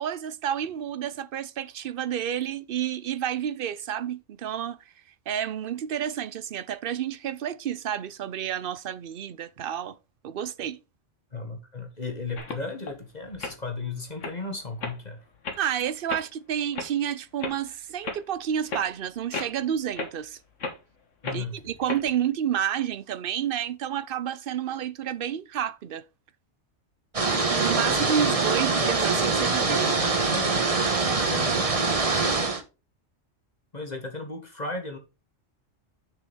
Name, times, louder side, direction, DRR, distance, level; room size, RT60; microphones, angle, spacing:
voice 1, 0.0-4.8 5.3-10.0 10.2-10.8 15.6-20.4 21.3-26.0 27.2-29.9, right 9 dB, 55° right, 0.7 m, -30 dB
voice 2, 11.3-15.3 21.2-21.7 27.8-28.6 29.7-30.6 31.2-31.8 33.7-35.0, left 3 dB, 35° left, 1.6 m, -36 dB
sound 1, 12.4-12.9 13.3-13.5 14.0-14.4 14.8-15.0 15.4-15.6 16.1-16.3 16.7-16.9 17.4-17.6 18.0-18.2 18.7-18.9 19.3-19.6 20.0-20.1 20.6-20.8 21.2-21.4 21.9-22.0, left 3 dB, 75° left, 1.8 m, -33 dB
sound 2, 27.1-32.6, right 3 dB, 30° right, 1.2 m, -24 dB
6.8 x 6.8 x 3.4 m
omnidirectional pair, 1.3 m